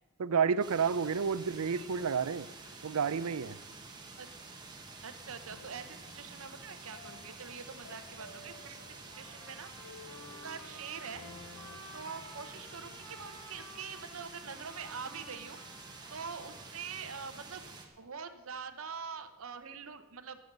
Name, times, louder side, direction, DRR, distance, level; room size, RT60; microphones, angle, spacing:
voice 1, 0.2-2.5 2.8-3.6, right 6 dB, 85° right, 17 dB, 0.5 m, -30 dB
FM Static, 0.6-17.9, right 3 dB, 20° right, 1.5 m, -49 dB
voice 2, 0.8-1.1 1.7-1.9 4.2-4.3 5.0-9.7 10.4-11.2 11.9-15.6 16.1-17.6 18.0-20.4, right 6 dB, 65° right, 10 dB, 0.9 m, -44 dB
sound 1, 4.4-4.7 5.5-11.8, left 4 dB, 55° left, 1.0 m, -55 dB
Trumpet, 9.1-16.9, equal, 15° left, 3.0 m, -53 dB
19.5 x 7.7 x 5.4 m, 1.2 s
head